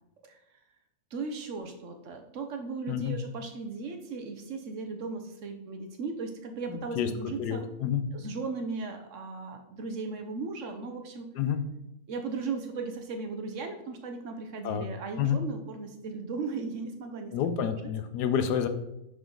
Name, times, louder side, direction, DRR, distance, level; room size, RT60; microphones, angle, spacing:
voice 1, 1.1-7.7 8.1-11.3 12.1-17.3 17.7-17.8, right 4 dB, 60° right, 6 dB, 1.0 m, -37 dB
voice 2, 6.7-7.1 7.4-8.0 11.4-11.6 14.6-14.8 15.2-15.4 17.3-18.7, left 8 dB, 90° left, 9 dB, 1.3 m, -29 dB
10.0 x 3.6 x 3.8 m, 0.86 s
omnidirectional pair, 1.7 m